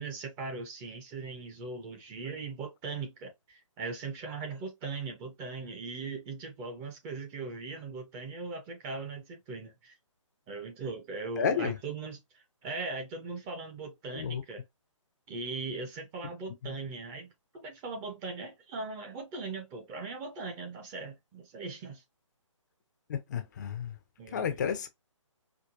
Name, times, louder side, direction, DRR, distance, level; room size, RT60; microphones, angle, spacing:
voice 1, 0.0-9.9 10.5-12.2 12.6-14.6 15.3-17.3 17.6-22.0 24.2-24.6, right 3 dB, 15° right, 0.6 m, -39 dB
voice 2, 11.4-11.8 14.1-14.4 16.6-16.7 23.1-24.0 24.3-24.9, left 7 dB, 35° left, 0.5 m, -31 dB
4.5 x 2.1 x 2.5 m
figure-of-eight pair, 145°, 17 cm